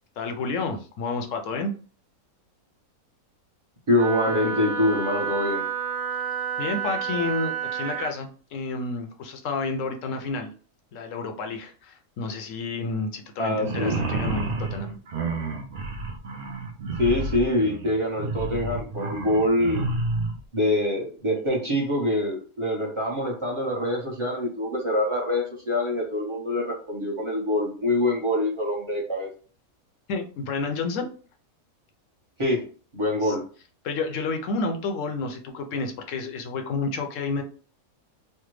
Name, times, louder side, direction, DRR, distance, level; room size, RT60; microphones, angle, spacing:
voice 1, 0.2-1.7 6.6-10.5 10.9-15.0 30.1-31.1 33.2-33.4 33.8-37.4, left 3 dB, 70° left, 5 dB, 0.9 m, -30 dB
voice 2, 3.9-5.6 13.4-13.9 17.0-19.8 20.5-29.3 32.4-32.6 32.9-33.4, left 1 dB, 25° right, -3 dB, 0.8 m, -25 dB
Wind instrument woodwind instrument, 4.0-8.1, right 6 dB, 80° right, 1.2 m, -30 dB
sound 1, 13.6-20.4, right 2 dB, 65° right, 0.5 m, -30 dB
3.3 x 2.1 x 3.1 m, 0.39 s
omnidirectional pair, 1.5 m